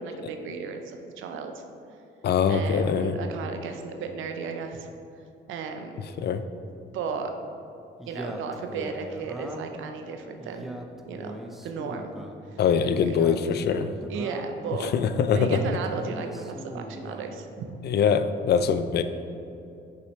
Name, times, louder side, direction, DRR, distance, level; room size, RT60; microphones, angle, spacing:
voice 1, 0.0-1.6 2.5-4.9 5.5-6.0 6.9-7.3 8.1-10.7 11.1-11.3 11.6-12.1 12.5-12.6 13.0-13.2 14.1-15.0 15.3-17.8, right 5 dB, 80° right, 5 dB, 0.6 m, -34 dB
voice 2, 2.2-3.2 6.2-6.4 12.6-13.9 14.9-15.6 17.8-19.0, left 7 dB, 55° left, 10 dB, 0.4 m, -23 dB
Male speech man speaking, 8.0-9.8 10.4-12.4 12.9-14.6 15.3-17.3, right 1 dB, ahead, 0.5 m, -40 dB
6.4 x 5.6 x 3.2 m, 2.7 s
cardioid pair, 90°, 20 cm